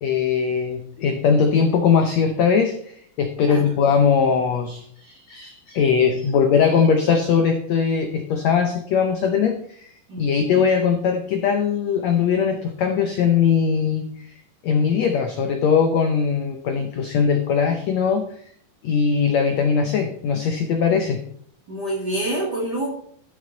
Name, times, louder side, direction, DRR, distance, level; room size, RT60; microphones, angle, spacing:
voice 1, 0.0-14.3 14.6-18.3 18.8-21.2, left 6 dB, 85° left, 5 dB, 1.5 m, -20 dB
voice 2, 10.1-10.6 21.7-22.9, right 1 dB, 35° right, -5 dB, 2.1 m, -27 dB
14.0 x 6.6 x 3.9 m, 0.63 s
omnidirectional pair, 4.3 m